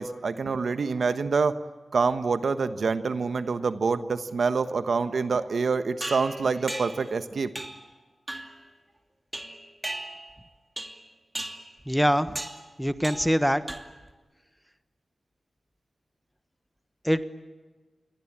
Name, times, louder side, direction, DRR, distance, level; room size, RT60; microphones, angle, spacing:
voice 1, 0.0-1.6 1.9-7.5, right 4 dB, 70° right, 11 dB, 1.3 m, -26 dB
sound 1, 6.0-7.1 7.6-7.9 8.3-8.6 9.3-10.4 10.8-11.1 11.4-11.7 12.4-12.7 13.0-13.4 13.7-14.1, right 1 dB, 20° right, 2.7 m, -37 dB
voice 2, 11.9-12.4 12.8-13.6 17.0-17.2, equal, ahead, 12 dB, 1.4 m, -23 dB
28.0 x 22.5 x 8.8 m, 1.2 s
wide cardioid pair, 85°, 0 cm